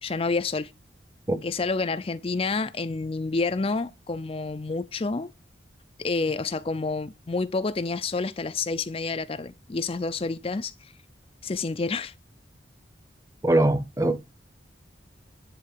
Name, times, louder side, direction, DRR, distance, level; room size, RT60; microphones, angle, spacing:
voice 1, 0.0-0.7 1.4-5.3 6.0-10.9 11.4-12.1, left 3 dB, 30° left, 0.5 m, -29 dB
voice 2, 13.4-14.2, right 1 dB, 15° right, 0.9 m, -22 dB
10.5 x 3.9 x 6.5 m
head